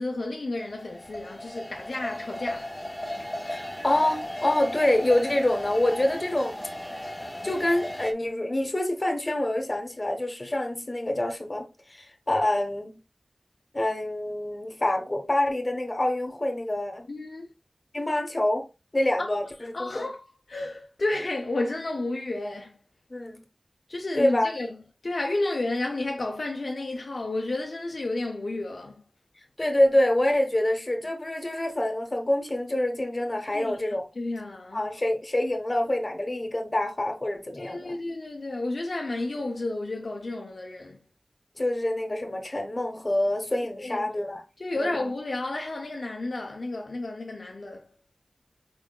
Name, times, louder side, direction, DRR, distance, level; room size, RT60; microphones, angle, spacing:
voice 1, 0.0-2.7 17.1-17.5 19.2-19.5 19.7-22.8 23.9-29.0 33.5-34.9 37.6-41.0 43.8-44.1 44.6-47.9, left 2 dB, 70° left, 0.5 m, -32 dB
sound 1, 0.6-8.1, left 1 dB, 10° left, 0.6 m, -36 dB
voice 2, 3.4-6.6 7.4-13.0 13.7-17.1 17.9-18.7 18.9-20.0 23.1-23.4 24.1-24.5 29.6-34.0 34.7-38.0 41.6-44.4 44.8-44.9, left 1 dB, 35° left, 1.0 m, -26 dB
4.7 x 3.6 x 2.3 m
wide cardioid pair, 55°, 0 cm